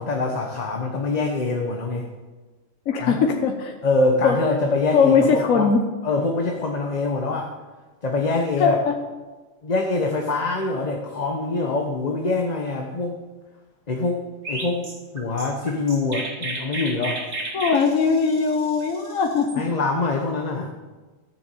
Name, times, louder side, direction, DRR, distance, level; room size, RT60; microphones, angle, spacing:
voice 1, 0.0-2.1 3.0-3.2 3.8-5.7 6.0-7.5 8.0-8.8 9.6-13.2 13.9-17.2 19.5-20.7, left 3 dB, 35° left, 2 dB, 1.1 m, -24 dB
voice 2, 2.9-3.7 4.2-4.4 4.9-5.8 8.6-9.0 17.5-19.6, left 5 dB, 80° left, 3 dB, 1.4 m, -20 dB
Chirp tweet, 14.4-19.6, right 2 dB, 55° right, 2.1 m, -33 dB
13.5 x 7.1 x 7.8 m, 1.3 s
omnidirectional pair, 1.4 m